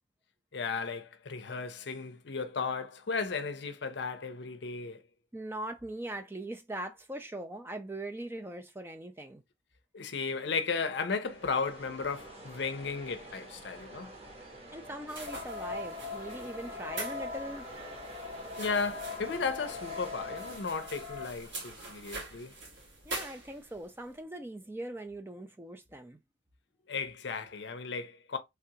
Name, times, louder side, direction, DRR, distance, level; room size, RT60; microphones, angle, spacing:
voice 1, 0.5-5.0 9.9-14.1 18.6-22.5 26.9-28.4, left 5 dB, 65° left, 0.6 m, -35 dB
voice 2, 5.3-9.4 14.7-17.6 23.0-26.2, right 1 dB, 10° right, 0.4 m, -41 dB
sound 1, 11.2-20.6, right 2 dB, 30° right, 1.1 m, -48 dB
sound 2, 15.1-23.9, right 2 dB, 80° right, 2.0 m, -45 dB
sound 3, 15.2-21.3, left 4 dB, 60° right, 1.2 m, -41 dB
3.3 x 2.4 x 2.8 m
head